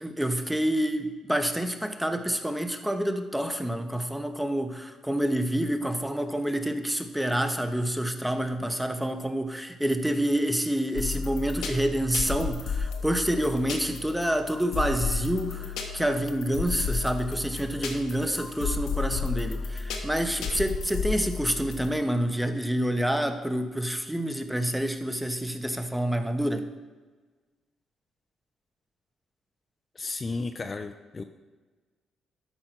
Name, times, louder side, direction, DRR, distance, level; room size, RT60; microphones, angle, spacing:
voice 1, 0.0-26.7, right 1 dB, 5° right, 6 dB, 1.0 m, -28 dB
sound 1, 10.9-21.9, left 5 dB, 85° left, 1.4 m, -33 dB
voice 2, 30.0-31.2, left 3 dB, 30° left, 6 dB, 0.6 m, -33 dB
12.0 x 4.3 x 6.0 m, 1.3 s
cardioid pair, 90°, 0 cm